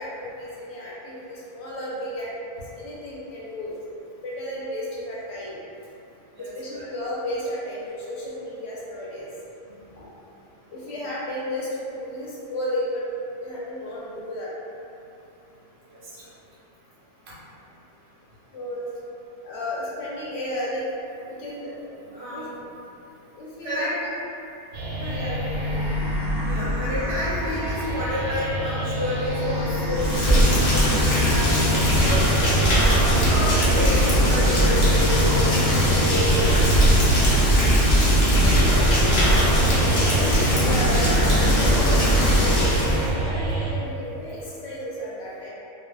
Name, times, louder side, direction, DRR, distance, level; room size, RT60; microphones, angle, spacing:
voice 1, 0.0-3.8 4.2-5.6 6.4-9.3 9.6-10.1 10.7-13.1 13.4-14.5 18.5-18.9 19.4-20.8 21.2-21.7 22.3-22.5 23.3-23.9 24.9-26.0 36.9-37.5 38.4-45.5, left 1 dB, 60° left, -8 dB, 0.8 m, -33 dB
voice 2, 6.4-6.9 22.1-22.5 23.6-23.9 26.5-32.3 32.6-35.4 35.9-36.5, left 1 dB, 55° right, -8 dB, 0.8 m, -30 dB
sound 1, 24.7-43.7, right 1 dB, 85° right, 1.0 m, -24 dB
Rain, 29.9-43.1, equal, 85° left, 0.3 m, -21 dB
2.3 x 2.3 x 2.3 m, 2.7 s
omnidirectional pair, 1.5 m